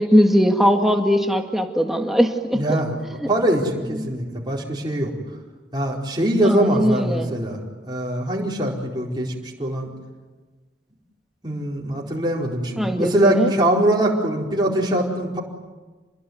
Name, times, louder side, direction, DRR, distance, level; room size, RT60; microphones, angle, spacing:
voice 1, 0.0-2.8 3.2-3.3 4.0-4.1 6.4-7.3 12.8-13.5, equal, ahead, 4 dB, 2.0 m, -20 dB
voice 2, 2.5-3.0 3.3-5.1 5.7-7.6 7.9-9.3 9.6-9.9 11.4-15.4, right 1 dB, 25° right, -2 dB, 4.5 m, -22 dB
28.5 x 21.5 x 9.6 m, 1.3 s
head